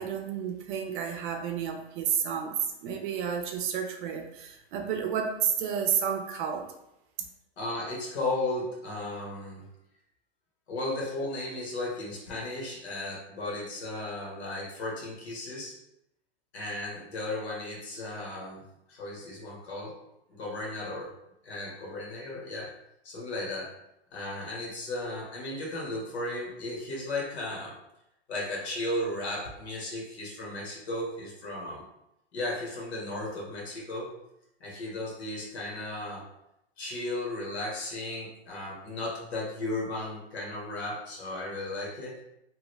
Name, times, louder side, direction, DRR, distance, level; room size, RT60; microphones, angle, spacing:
voice 1, 0.0-6.6, right 8 dB, 50° right, 4 dB, 0.5 m, -31 dB
voice 2, 7.6-9.7 10.7-15.7 16.5-18.6 18.9-19.9 20.3-21.1 21.4-22.7 23.0-23.7 24.1-27.8 28.3-31.8 32.3-34.1 34.6-36.3 36.8-42.2, left 2 dB, 80° left, -2 dB, 1.3 m, -35 dB
3.0 x 2.3 x 3.0 m, 0.83 s
hypercardioid pair, 140°, 32 cm